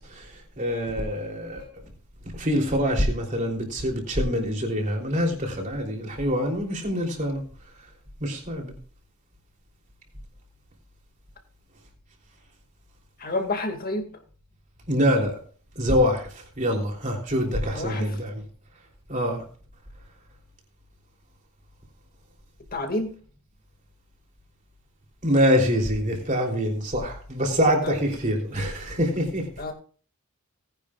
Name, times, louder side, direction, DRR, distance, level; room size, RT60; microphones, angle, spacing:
voice 1, 0.6-1.7 2.4-7.4 8.2-8.7 14.9-15.3 15.8-16.3 16.6-18.4 19.1-19.4 25.2-29.4, equal, 35° right, 3.4 m, -25 dB
voice 2, 13.2-14.1 17.7-18.1 22.7-23.1 27.8-27.9 29.6-29.7, left 2 dB, 40° left, 2.2 m, -28 dB
18.5 x 10.5 x 2.4 m
head